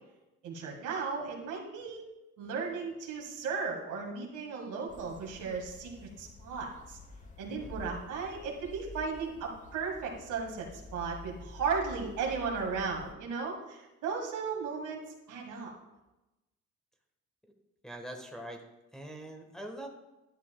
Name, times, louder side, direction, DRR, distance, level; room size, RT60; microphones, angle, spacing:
voice 1, 0.4-2.0 2.4-7.0 7.4-15.0 15.3-15.7, right 5 dB, 80° right, -1 dB, 2.0 m, -36 dB
sound 1, 4.9-13.1, left 2 dB, 25° left, 1.0 m, -49 dB
voice 2, 17.8-18.6 18.9-19.9, right 1 dB, ahead, 1 dB, 1.4 m, -43 dB
11.0 x 9.5 x 2.3 m, 1.0 s
cardioid pair, 90°, 30 cm